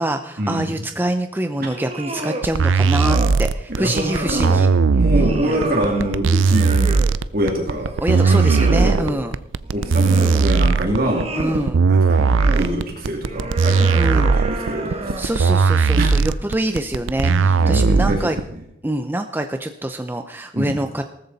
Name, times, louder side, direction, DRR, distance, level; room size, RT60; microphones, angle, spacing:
voice 1, 0.0-4.7 5.1-5.6 8.0-9.3 11.4-11.8 14.0-14.3 15.2-18.4 18.8-21.0, right 1 dB, 10° right, 6 dB, 0.6 m, -25 dB
sound 1, 1.6-2.5 2.8-3.4 3.8-4.7 5.1-7.2 7.6-9.0 9.7-10.6 10.9-11.7 12.2-12.8 13.3-15.4, right 2 dB, 35° right, 1.7 m, -30 dB
sound 2, 2.4-18.4, right 4 dB, 85° right, 0.5 m, -17 dB
voice 2, 3.8-4.5 4.9-6.9 7.3-7.9 8.6-9.2 9.7-11.3 11.9-15.3 16.0-16.2 17.2-18.2 20.5-20.8, right 1 dB, 50° right, 0 dB, 2.6 m, -24 dB
18.5 x 13.5 x 4.1 m, 0.83 s
head